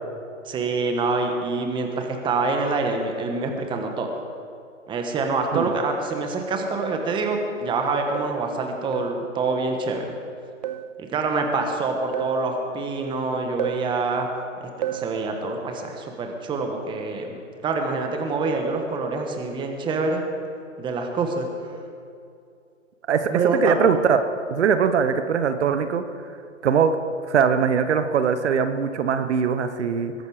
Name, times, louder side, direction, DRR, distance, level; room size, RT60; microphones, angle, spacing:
voice 1, 0.5-4.1 4.9-10.1 11.1-14.3 14.6-20.2 20.8-21.5 23.3-23.8, right 3 dB, 10° right, 3 dB, 1.3 m, -26 dB
sound 1, 6.1-6.4 6.8-7.1 8.1-8.4 8.9-9.2 10.6-10.9 12.1-12.4 13.6-13.9 14.8-15.1, right 11 dB, 35° right, 0.5 m, -31 dB
voice 2, 23.6-24.2 24.5-26.0 26.6-27.0 27.3-30.1, right 7 dB, 60° right, 10 dB, 1.1 m, -21 dB
21.5 x 11.0 x 4.9 m, 2.5 s
hypercardioid pair, 140°, 38 cm